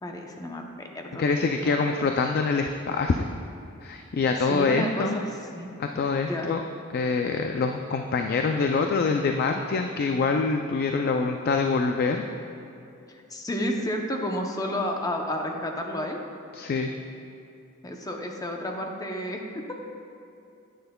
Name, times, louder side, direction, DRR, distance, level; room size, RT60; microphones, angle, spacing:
voice 1, 0.0-1.3 1.6-1.8 4.4-5.7 6.3-6.5 13.1-16.2 17.8-19.6, equal, 15° left, 2 dB, 0.7 m, -31 dB
voice 2, 1.2-3.3 3.8-5.2 5.8-6.6 6.9-12.3 16.5-16.9, left 4 dB, 50° left, 4 dB, 0.3 m, -25 dB
10.0 x 9.1 x 2.2 m, 2.6 s
head